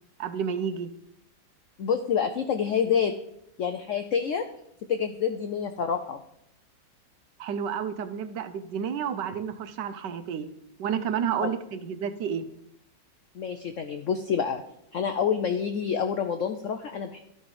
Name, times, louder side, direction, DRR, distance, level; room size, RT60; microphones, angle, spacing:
voice 1, 0.2-0.9 7.4-10.5 10.8-12.5, right 7 dB, 70° right, 11 dB, 1.2 m, -30 dB
voice 2, 1.8-3.1 3.6-4.5 4.9-6.2 11.4-11.5 13.3-14.6 14.9-17.2, left 7 dB, 85° left, 8 dB, 0.6 m, -27 dB
12.0 x 5.6 x 4.8 m, 0.76 s
omnidirectional pair, 2.1 m